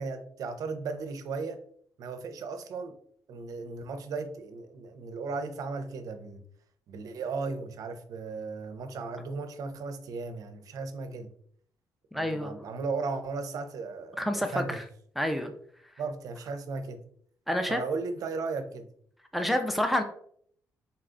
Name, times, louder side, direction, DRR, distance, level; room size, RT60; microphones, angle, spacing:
voice 1, 0.0-1.6 2.0-2.9 3.3-6.4 6.9-11.3 12.1-14.8 16.0-17.0 17.7-18.9, right 4 dB, 60° right, 0.5 m, -36 dB
voice 2, 12.1-12.5 14.2-14.8 15.2-15.5 17.5-17.8 19.3-20.0, left 1 dB, ahead, 0.4 m, -28 dB
4.0 x 2.3 x 3.7 m
cardioid pair, 140°, 7 cm